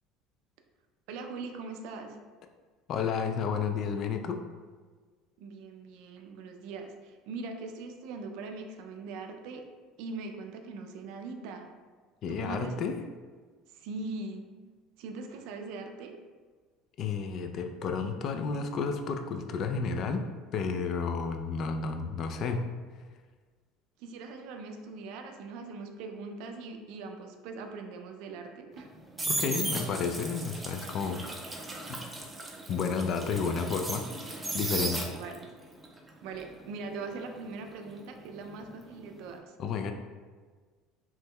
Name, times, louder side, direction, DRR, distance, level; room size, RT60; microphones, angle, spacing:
voice 1, 1.1-2.2 5.4-9.7 10.0-11.7 12.3-13.0 13.7-14.4 15.0-16.2 24.0-28.9 35.2-35.6 36.2-39.6, right 3 dB, 75° right, 5 dB, 0.3 m, -41 dB
voice 2, 2.9-4.4 12.2-13.0 17.0-20.3 20.5-22.7 29.3-31.2 31.9-32.0 32.7-34.1 34.5-35.1 39.6-39.9, left 5 dB, 55° left, 6 dB, 0.3 m, -31 dB
sound 1, 28.7-35.5 35.8-38.7 39.0-39.3, right 2 dB, 15° right, 0.5 m, -36 dB
2.9 x 2.2 x 3.5 m, 1.5 s
supercardioid pair, 100°, 0 cm